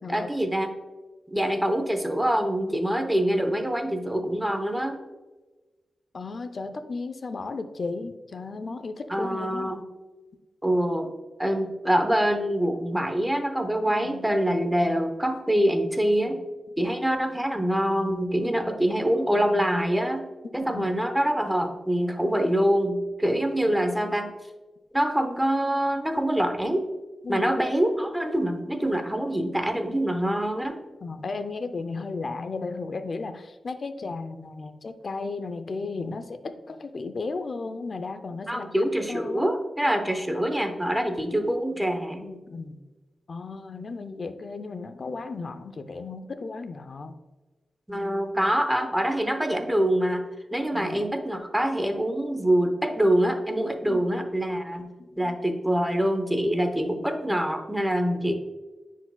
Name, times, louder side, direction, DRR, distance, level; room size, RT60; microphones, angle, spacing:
voice 1, 0.1-0.7 1.3-5.0 9.1-9.8 10.6-11.1 11.4-16.5 16.8-20.2 20.5-24.3 24.9-26.9 27.3-30.8 38.5-42.2 47.9-50.2 50.5-54.9 55.2-58.4, equal, 5° right, 6 dB, 0.7 m, -25 dB
voice 2, 6.1-9.7 13.9-14.3 20.6-21.0 23.6-23.8 27.2-27.5 31.0-38.7 39.1-39.5 40.0-40.5 42.2-42.8 43.3-47.2 50.7-51.0 53.8-54.0 55.0-55.4, left 3 dB, 50° left, 9 dB, 0.5 m, -35 dB
9.6 x 4.6 x 2.2 m, 1.2 s
wide cardioid pair, 100°, 0 cm